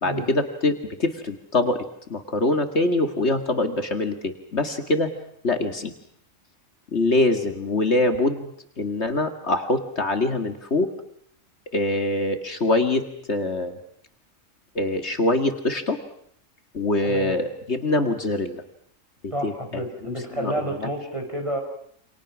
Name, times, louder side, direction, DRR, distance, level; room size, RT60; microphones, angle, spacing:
voice 1, 0.0-5.1 5.4-5.9 6.9-8.5 8.8-10.9 11.7-13.7 14.8-16.0 16.7-18.6 19.4-19.5 20.4-20.7, left 2 dB, 55° left, 7 dB, 2.2 m, -24 dB
voice 2, 17.0-17.4 19.3-21.6, right 1 dB, 25° right, 3 dB, 6.1 m, -30 dB
28.5 x 27.5 x 6.2 m, 0.68 s
omnidirectional pair, 1.3 m